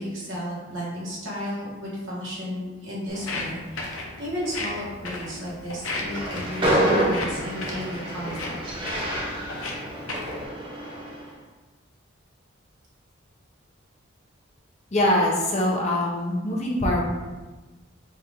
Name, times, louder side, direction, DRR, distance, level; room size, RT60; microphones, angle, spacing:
voice 1, 0.0-8.6, equal, 65° right, -7 dB, 1.4 m, -33 dB
Walk footsteps, 3.1-10.4, left 2 dB, 85° left, 0.7 m, -36 dB
Train, 6.0-11.3, right 1 dB, 25° right, 0.6 m, -27 dB
voice 2, 14.9-17.0, left 1 dB, 30° left, -2 dB, 0.5 m, -23 dB
4.2 x 2.5 x 3.5 m, 1.2 s
head